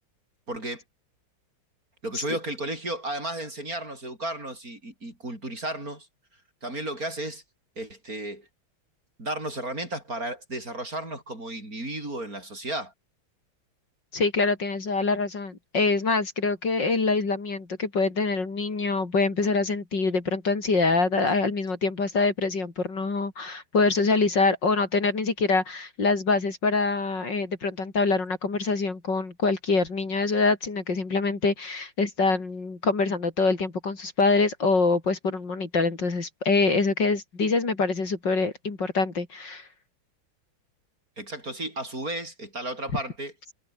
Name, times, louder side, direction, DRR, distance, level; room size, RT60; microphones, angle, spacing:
voice 1, 0.5-0.8 2.0-6.1 6.6-7.4 7.8-8.5 9.2-12.9 41.2-43.3, right 1 dB, 45° right, 8.6 m, -33 dB
voice 2, 14.1-39.7, left 3 dB, 60° left, 4.3 m, -25 dB
omnidirectional pair, 2.2 m